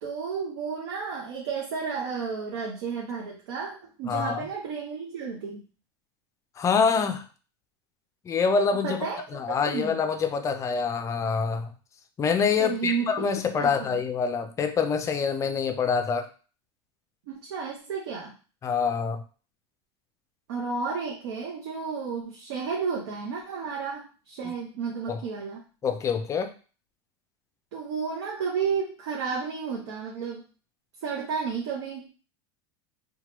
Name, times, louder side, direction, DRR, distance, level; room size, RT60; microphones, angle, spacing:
voice 1, 0.0-5.6 8.8-10.0 12.6-13.3 13.5-14.0 17.3-18.4 20.5-25.6 27.7-30.5 31.0-32.1, right 5 dB, 75° right, -2 dB, 0.7 m, -32 dB
voice 2, 4.1-4.5 6.6-7.2 8.3-9.1 9.3-11.7 12.2-16.3 18.6-19.2 25.1-25.2 25.8-26.5, left 5 dB, 20° left, 7 dB, 0.4 m, -26 dB
2.9 x 2.2 x 2.9 m, 0.37 s
supercardioid pair, 120°, 14 cm